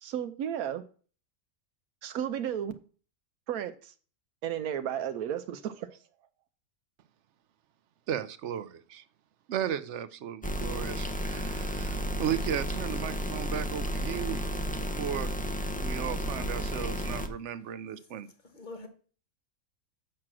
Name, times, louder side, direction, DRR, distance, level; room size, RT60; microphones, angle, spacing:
voice 1, 0.0-0.8 2.0-2.8 3.5-3.9 4.4-6.0, right 9 dB, 85° right, 10 dB, 1.1 m, -33 dB
voice 2, 8.1-9.0 9.5-14.5 15.0-15.3 15.8-18.3, right 9 dB, 60° right, 15 dB, 0.9 m, -35 dB
sound 1, 10.4-17.3, equal, 10° left, 0.3 m, -32 dB
voice 3, 18.2-18.9, left 3 dB, 35° left, 7 dB, 1.4 m, -45 dB
7.6 x 6.2 x 6.0 m, 0.41 s
omnidirectional pair, 1.5 m